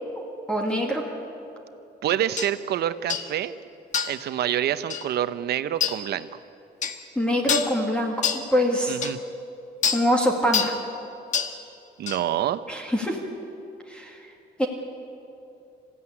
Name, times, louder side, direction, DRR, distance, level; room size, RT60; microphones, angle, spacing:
voice 1, 0.5-1.0 7.2-9.0 9.9-10.7 12.7-13.2 13.9-14.2 14.6-14.7, equal, 5° left, 1 dB, 2.0 m, -24 dB
voice 2, 2.0-3.5 4.1-6.3 8.9-9.2 12.0-12.6, right 11 dB, 65° right, 12 dB, 0.9 m, -27 dB
sound 1, 2.4-2.5 3.1-3.3 3.9-4.2 4.9-5.1 5.8-6.0 6.8-7.0 7.5-7.7 8.2-8.4 9.0-9.1 9.8-10.0 10.5-10.8 11.3-11.5 12.1-12.2, left 7 dB, 45° left, 1.4 m, -26 dB
27.0 x 15.5 x 9.9 m, 2.8 s
cardioid pair, 165°, 18 cm